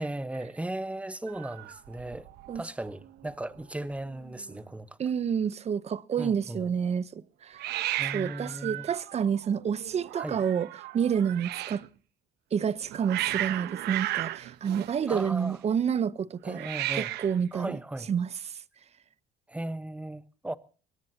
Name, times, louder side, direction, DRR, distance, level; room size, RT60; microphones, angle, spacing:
voice 1, 0.0-2.3 2.5-5.0 6.2-6.7 8.0-8.8 10.1-10.4 15.1-15.6 16.4-17.1 17.5-18.1 19.5-20.6, right 1 dB, 5° right, 1.1 m, -36 dB
Hiss, 1.3-2.6 2.9-3.3 3.6-3.7 3.9-4.6 7.6-11.9 12.6-15.6 16.5-17.4, right 15 dB, 80° right, 0.9 m, -35 dB
voice 2, 5.0-7.6 8.1-10.7 10.9-11.8 12.5-16.7 17.0-17.8 18.1-18.3, right 7 dB, 40° right, 0.8 m, -29 dB
22.0 x 19.0 x 2.8 m
cardioid pair, 110°, 17 cm